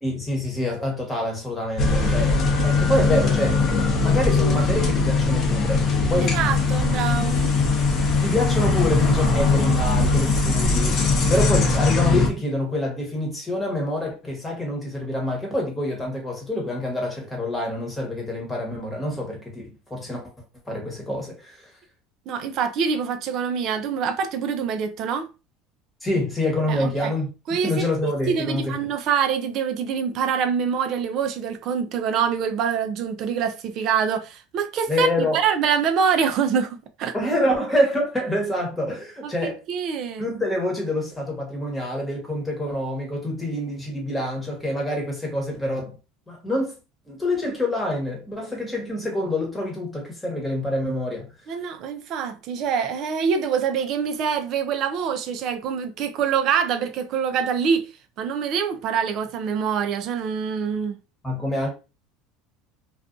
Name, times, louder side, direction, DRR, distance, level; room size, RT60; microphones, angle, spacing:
voice 1, 0.0-3.6 4.0-6.3 8.2-20.2 20.7-21.7 26.0-27.3 27.6-28.8 34.9-35.4 37.1-39.6 40.2-46.0 46.3-46.8 47.1-51.3 61.2-61.7, left 1 dB, 10° left, 1.1 m, -26 dB
sound 1, 1.8-12.3, left 3 dB, 40° left, 0.7 m, -20 dB
voice 2, 6.2-7.6 22.3-25.3 26.7-27.1 27.5-37.1 39.2-40.3 51.5-57.9 58.2-61.0, right 7 dB, 55° right, 0.5 m, -25 dB
2.5 x 2.3 x 2.4 m
supercardioid pair, 115°, 0 cm